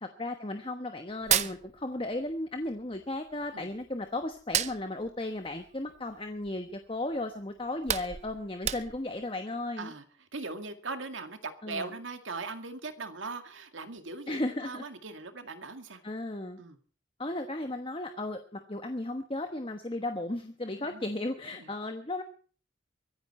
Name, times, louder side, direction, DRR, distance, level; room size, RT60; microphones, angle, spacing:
voice 1, 0.0-9.9 11.6-11.9 14.3-14.8 16.0-16.6 17.2-22.2, left 2 dB, 25° left, 6 dB, 1.1 m, -35 dB
Hands, 1.1-2.4 2.6-3.9 4.3-6.7 7.1-7.2 7.6-9.2, right 10 dB, 35° right, 0.7 m, -32 dB
voice 2, 9.8-16.0 16.6-16.8 20.8-21.0 21.6-21.7, right 3 dB, 80° right, 8 dB, 2.1 m, -40 dB
24.0 x 10.5 x 4.3 m, 0.41 s
head